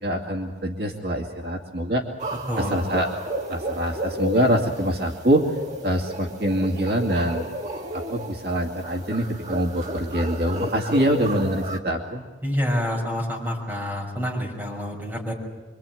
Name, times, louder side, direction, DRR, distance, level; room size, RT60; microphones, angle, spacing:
voice 1, 0.0-2.0 2.6-3.1 3.5-5.5 5.8-7.5 7.9-12.2, equal, 60° right, 1 dB, 2.4 m, -24 dB
sound 1, 2.2-11.8, right 1 dB, 40° right, 2.2 m, -33 dB
voice 2, 12.4-15.3, equal, 10° right, -2 dB, 6.1 m, -27 dB
26.0 x 24.5 x 9.2 m, 1.3 s
head